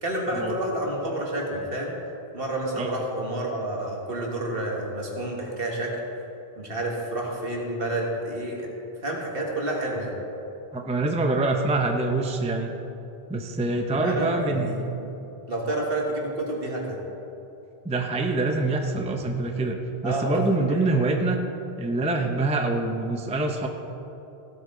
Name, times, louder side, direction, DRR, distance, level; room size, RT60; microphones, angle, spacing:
voice 1, 0.0-2.0 2.3-6.0 6.6-8.7 9.0-10.1 14.0-14.8 15.5-17.0 20.0-20.4 20.7-20.8, right 1 dB, 60° right, -1 dB, 1.9 m, -29 dB
voice 2, 10.7-12.7 13.3-14.7 17.8-21.4 21.8-23.7, right 2 dB, 10° right, 3 dB, 0.5 m, -25 dB
16.0 x 8.4 x 3.8 m, 3.0 s
omnidirectional pair, 1.1 m